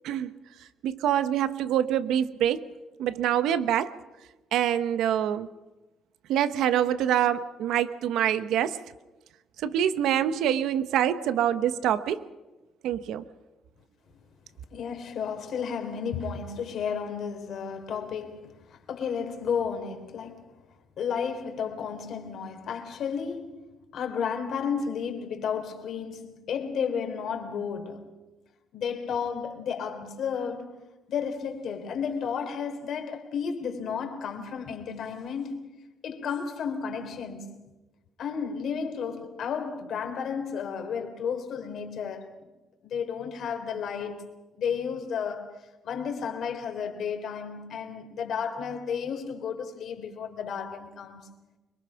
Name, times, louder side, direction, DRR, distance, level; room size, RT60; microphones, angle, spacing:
voice 1, 0.8-2.7 3.0-4.0 4.5-5.5 6.3-8.8 9.6-12.2 12.8-13.2, right 10 dB, 85° right, 1.1 m, -25 dB
voice 2, 14.7-20.4 21.0-23.6 23.9-28.1 28.7-30.8 31.1-35.6 36.0-37.6 38.2-42.3 42.8-44.3 44.6-45.5 45.8-51.2, left 6 dB, 70° left, 3.6 m, -32 dB
25.0 x 22.5 x 5.9 m
cardioid pair, 90°, 0 cm